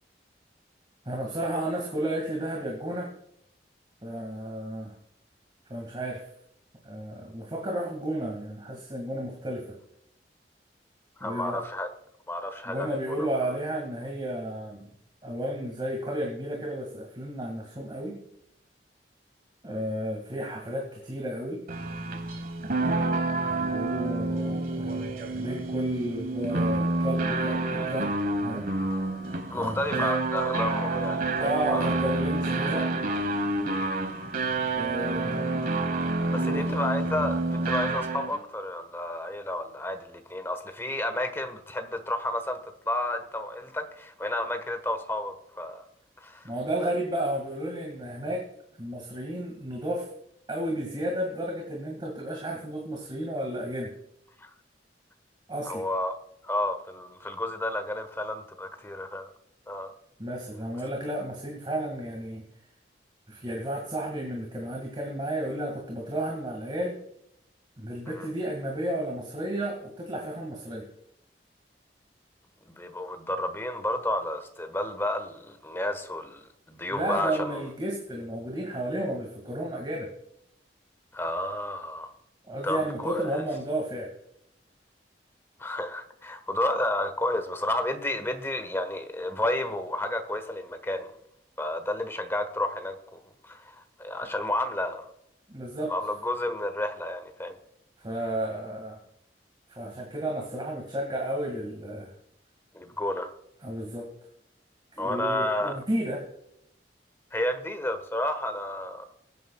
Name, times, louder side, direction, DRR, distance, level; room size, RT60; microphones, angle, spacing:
voice 1, 1.1-3.1 4.0-5.0 5.7-6.3 6.8-9.8 11.2-11.6 12.7-14.9 15.2-18.2 19.6-21.6 23.4-28.1 28.4-28.7 29.5-30.1 31.4-32.9 34.7-35.7 36.3-36.8 46.4-48.5 48.8-50.1 50.5-53.9 55.5-55.8 60.2-62.4 63.3-67.0 67.8-70.9 76.9-80.1 82.5-84.1 95.5-95.9 98.0-99.0 99.7-102.1 103.6-104.1 104.9-106.3, right 1 dB, 25° right, -1 dB, 2.0 m, -32 dB
voice 2, 11.2-11.9 12.3-13.5 23.0-23.2 27.8-27.9 29.5-31.9 36.3-42.6 42.8-45.8 46.2-46.5 54.4-54.5 55.6-56.1 56.4-59.3 59.7-59.9 68.1-68.3 72.7-77.6 81.1-82.1 82.6-83.4 85.6-91.1 91.6-95.1 95.9-97.6 102.7-103.3 105.0-105.8 107.3-109.0, left 1 dB, 15° left, 7 dB, 1.3 m, -31 dB
sound 1, 21.7-38.4, right 2 dB, 55° right, 1.3 m, -28 dB
22.5 x 9.3 x 2.3 m, 0.74 s
head